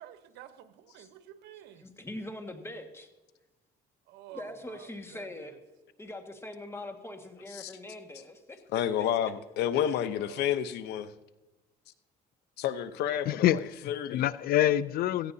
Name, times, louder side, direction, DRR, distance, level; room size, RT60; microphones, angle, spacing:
voice 1, 0.0-1.9 4.1-5.6 10.1-10.6, right 12 dB, 85° right, 10 dB, 1.0 m, -50 dB
voice 2, 1.8-3.1 4.3-5.5 6.0-8.6, left 1 dB, 15° left, 4 dB, 1.8 m, -42 dB
voice 3, 8.7-11.1 12.6-14.2, left 10 dB, 80° left, 12 dB, 0.8 m, -30 dB
voice 4, 13.3-15.3, left 12 dB, 60° left, 17 dB, 0.4 m, -26 dB
17.0 x 15.0 x 2.8 m, 1.1 s
cardioid pair, 110°, 17 cm